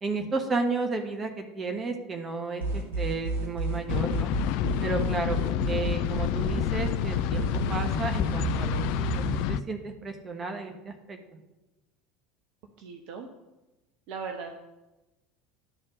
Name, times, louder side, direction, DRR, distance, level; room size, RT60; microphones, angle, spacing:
voice 1, 0.0-4.3 4.8-5.4 5.7-11.2, right 3 dB, 25° right, 4 dB, 1.3 m, -33 dB
sound 1, 2.6-9.4, right 2 dB, 75° right, 2.6 m, -31 dB
sound 2, 3.9-9.6, left 12 dB, 55° left, 0.3 m, -29 dB
voice 2, 12.8-13.3 14.1-14.5, right 5 dB, 55° right, 4 dB, 0.9 m, -38 dB
11.0 x 4.3 x 6.3 m, 1.1 s
figure-of-eight pair, 70°, 0 cm